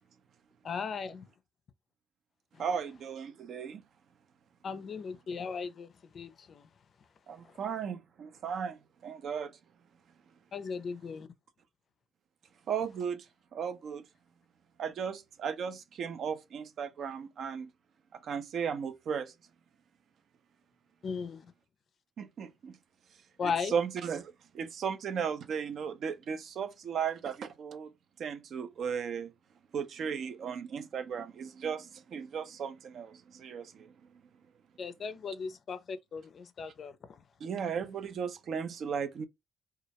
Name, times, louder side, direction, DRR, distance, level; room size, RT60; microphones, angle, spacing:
voice 1, 0.6-1.2 4.6-6.7 10.5-11.3 21.0-21.5 23.4-23.7 34.8-37.2, left 5 dB, 55° left, 0.4 m, -37 dB
voice 2, 2.6-3.8 7.3-9.6 12.7-13.3 13.5-14.0 14.8-17.7 18.1-19.3 22.2-22.8 23.4-27.9 28.2-29.3 29.7-33.9 37.4-39.3, right 7 dB, 65° right, 0.4 m, -36 dB
2.3 x 2.0 x 2.7 m
cardioid pair, 90°, 0 cm